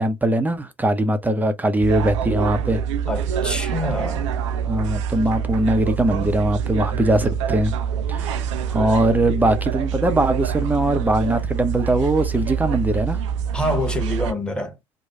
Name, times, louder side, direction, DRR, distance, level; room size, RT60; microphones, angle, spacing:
voice 1, 0.0-2.8 4.7-7.7 8.1-13.2, right 1 dB, 10° right, 0.7 m, -21 dB
sound 1, 1.8-14.3, right 8 dB, 75° right, 0.4 m, -25 dB
voice 2, 3.1-4.3 13.5-14.7, left 1 dB, 5° left, 1.3 m, -26 dB
3.1 x 2.2 x 4.0 m
figure-of-eight pair, 65°, 16 cm